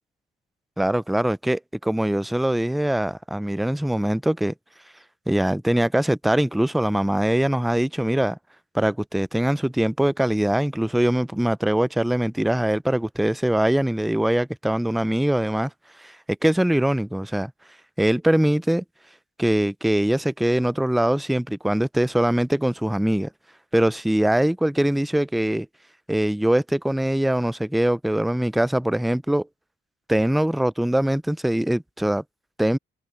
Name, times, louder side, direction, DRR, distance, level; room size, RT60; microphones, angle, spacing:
voice 1, 0.8-4.5 5.3-8.4 8.7-15.7 16.0-16.2 16.4-17.5 18.0-18.8 19.4-23.3 23.7-25.7 26.1-29.5 30.1-32.2 32.6-32.8, right 1 dB, ahead, 0.3 m, -22 dB
cardioid pair, 90°, 20 cm